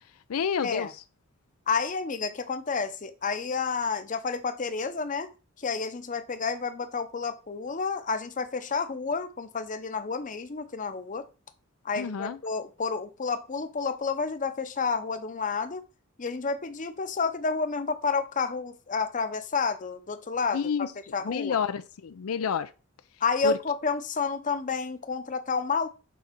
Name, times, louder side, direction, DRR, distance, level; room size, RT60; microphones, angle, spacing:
voice 1, 0.3-0.9 12.0-12.4 20.5-20.9 21.2-22.7 23.4-23.6, left 7 dB, 85° left, 0.5 m, -29 dB
voice 2, 1.7-5.3 5.6-11.2 11.8-15.8 16.2-20.6 21.1-21.6 23.2-25.9, left 5 dB, 40° left, 0.7 m, -30 dB
6.2 x 4.1 x 5.8 m
head